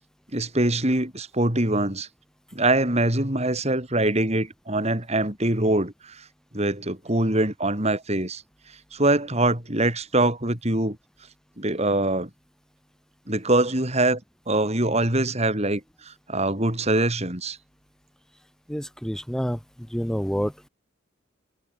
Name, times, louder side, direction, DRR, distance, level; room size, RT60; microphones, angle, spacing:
voice 1, 0.3-2.1 2.5-6.2 6.5-8.4 8.9-11.0 11.6-12.3 13.3-14.2 14.5-17.6, right 2 dB, 30° right, 4.1 m, -23 dB
voice 2, 18.7-19.6 19.9-20.7, equal, 5° left, 4.1 m, -28 dB
head